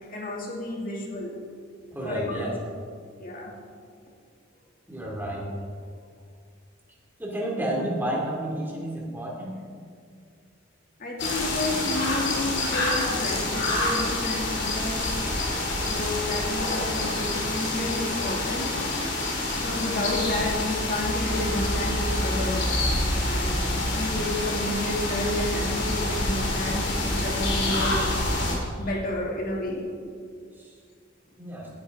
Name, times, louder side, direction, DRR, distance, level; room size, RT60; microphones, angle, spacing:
voice 1, 0.1-1.4 2.0-2.5 3.2-3.5 11.0-15.0 15.8-18.7 19.6-22.7 23.1-28.2 28.8-29.9, left 1 dB, 45° left, -2 dB, 2.6 m, -31 dB
voice 2, 1.9-2.5 4.9-5.5 7.2-9.6 30.5-30.8 31.4-31.7, right 1 dB, 10° right, -3 dB, 2.5 m, -31 dB
sound 1, 11.2-28.6, left 2 dB, 65° left, 2.9 m, -27 dB
17.5 x 9.9 x 3.7 m, 2.1 s
head